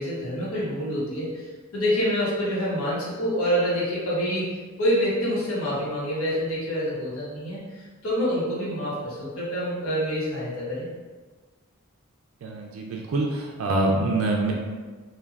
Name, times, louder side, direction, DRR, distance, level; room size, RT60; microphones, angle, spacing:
voice 1, 0.0-4.5 4.8-10.9, equal, 85° left, -7 dB, 1.0 m, -27 dB
voice 2, 12.4-14.5, right 2 dB, 75° right, 0 dB, 0.3 m, -25 dB
3.3 x 2.2 x 2.3 m, 1.4 s
head